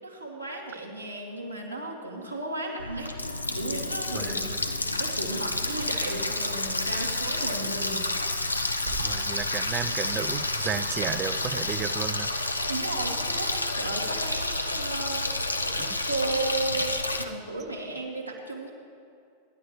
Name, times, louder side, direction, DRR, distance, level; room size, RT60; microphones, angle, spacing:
voice 1, 0.0-3.1 3.5-4.3 5.0-8.0 12.7-18.7, right 2 dB, 90° right, -2 dB, 2.2 m, -34 dB
Water tap faucet, 2.8-17.2, left 2 dB, 85° left, 0.7 m, -29 dB
voice 2, 4.1-4.5 9.0-12.3 15.8-16.0, right 8 dB, 30° right, 11 dB, 0.7 m, -33 dB
sound 1, 8.8-10.3, right 5 dB, 60° right, 1.9 m, -45 dB
25.0 x 11.0 x 3.2 m, 2.4 s
figure-of-eight pair, 90°, 0 cm